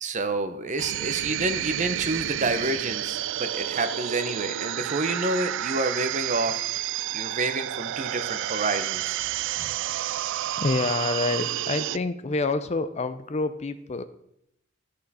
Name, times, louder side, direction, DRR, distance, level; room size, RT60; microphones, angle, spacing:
voice 1, 0.0-6.6 7.1-9.2 9.6-9.7, right 3 dB, 35° right, 9 dB, 0.9 m, -28 dB
sound 1, 0.8-12.0, right 13 dB, 60° right, 0.3 m, -30 dB
voice 2, 10.6-14.0, left 3 dB, 30° left, 11 dB, 0.5 m, -27 dB
13.5 x 6.6 x 4.2 m, 0.78 s
head